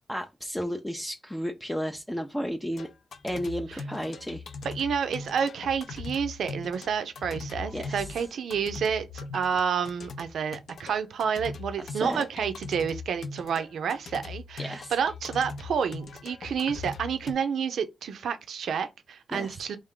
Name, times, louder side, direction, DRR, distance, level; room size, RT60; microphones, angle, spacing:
voice 1, 0.1-2.9 3.2-4.4 7.7-8.1 11.9-12.3 14.6-14.9 19.3-19.6, equal, 5° left, 0.4 m, -33 dB
sound 1, 2.7-17.3, left 4 dB, 70° left, 0.5 m, -40 dB
voice 2, 4.6-19.8, right 7 dB, 85° right, 0.5 m, -29 dB
3.3 x 2.5 x 3.6 m
cardioid pair, 100°, 0 cm